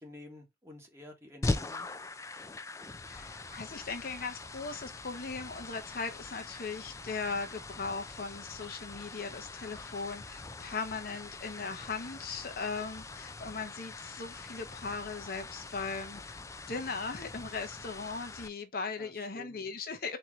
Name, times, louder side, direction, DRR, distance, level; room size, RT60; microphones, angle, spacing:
voice 1, 0.0-1.9 19.0-19.6, left 1 dB, 15° right, 1.5 m, -51 dB
sound 1, 1.4-18.5, left 2 dB, 15° left, 0.4 m, -42 dB
voice 2, 3.1-20.2, left 4 dB, 55° left, 0.8 m, -38 dB
4.4 x 2.8 x 3.6 m
head